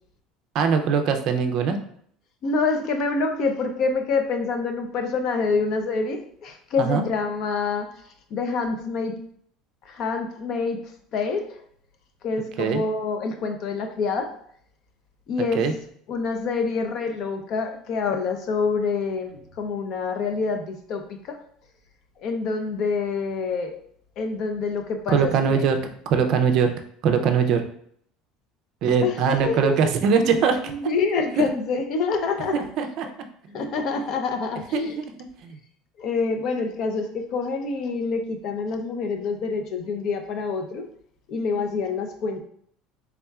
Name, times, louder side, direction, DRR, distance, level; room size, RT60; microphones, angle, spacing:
voice 1, 0.5-1.8 6.8-7.0 12.6-12.8 15.5-15.7 25.1-25.8 26.1-26.7 27.0-27.6 28.8-30.7 31.4-31.5 32.8-33.1 33.4-33.6 34.7-34.8 35.4-35.6, right 6 dB, 45° right, 6 dB, 0.5 m, -21 dB
voice 2, 2.4-9.2 9.8-11.6 12.2-14.3 15.3-15.7 16.1-21.4 22.2-23.8 24.2-25.7 29.0-29.8 30.4-32.6 33.5-35.0 36.0-40.9 41.3-42.4, left 4 dB, 40° left, 5 dB, 0.5 m, -27 dB
4.2 x 3.5 x 2.3 m, 0.64 s
cardioid pair, 165°, 0 cm